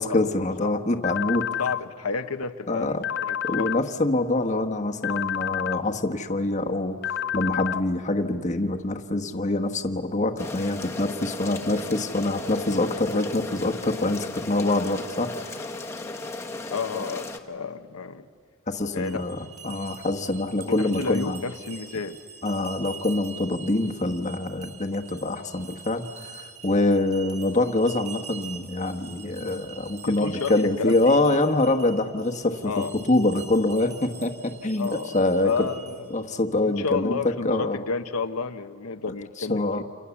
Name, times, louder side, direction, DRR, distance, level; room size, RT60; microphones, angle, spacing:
voice 1, 0.0-1.4 2.7-3.0 3.4-15.7 18.7-19.4 19.6-21.4 22.4-35.5 36.1-37.2 37.4-37.8 39.5-39.8, left 2 dB, 30° left, 4 dB, 1.2 m, -25 dB
sound 1, 1.0-1.8 3.0-3.8 5.0-5.8 7.0-7.8, left 10 dB, 50° left, 0.8 m, -29 dB
voice 2, 1.6-3.7 16.7-18.3 18.9-19.2 20.6-22.2 30.0-31.2 32.6-32.9 34.8-35.2 35.4-36.2 36.6-39.8, left 4 dB, 80° left, 8 dB, 0.9 m, -31 dB
sound 2, 10.4-17.4, left 2 dB, 10° left, 1.2 m, -35 dB
sound 3, 18.8-36.2, right 6 dB, 30° right, 3.9 m, -44 dB
29.5 x 28.0 x 7.2 m, 2.3 s
head